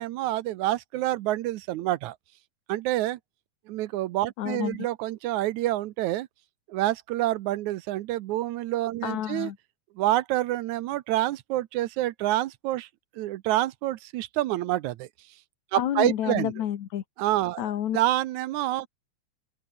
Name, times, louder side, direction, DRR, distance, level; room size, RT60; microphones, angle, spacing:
voice 1, 0.0-2.2 2.7-3.2 3.7-6.3 6.7-9.5 10.0-12.9 13.2-15.1 15.7-16.5 17.2-17.6 17.9-18.9, right 15 dB, 75° right, 2.1 m, -27 dB
voice 2, 4.4-4.8 9.0-9.6 15.7-17.0 17.6-18.0, left 11 dB, 70° left, 2.8 m, -29 dB
open air
omnidirectional pair, 3.5 m